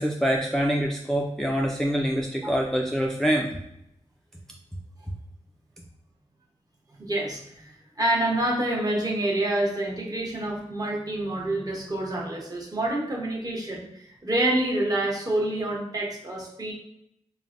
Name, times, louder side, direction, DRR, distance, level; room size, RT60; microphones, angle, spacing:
voice 1, 0.0-3.6, equal, 5° left, 0 dB, 0.3 m, -25 dB
voice 2, 7.0-16.7, right 1 dB, 30° right, -3 dB, 0.9 m, -27 dB
3.2 x 2.1 x 2.5 m, 0.78 s
cardioid pair, 55°, 12 cm